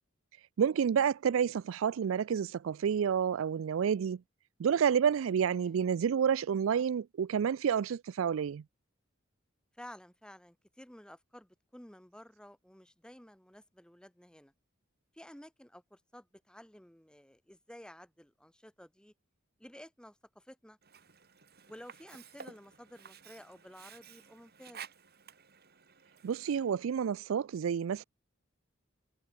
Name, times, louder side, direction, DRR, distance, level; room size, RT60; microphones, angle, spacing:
voice 1, 0.6-4.2 4.6-8.6 26.2-28.0, right 7 dB, 70° right, 0.4 m, -29 dB
voice 2, 5.4-5.8 9.8-14.5 15.1-19.1 19.6-20.8 21.7-24.8, equal, 5° left, 1.6 m, -53 dB
Sink (filling or washing), 20.8-26.8, right 7 dB, 50° right, 6.0 m, -53 dB
head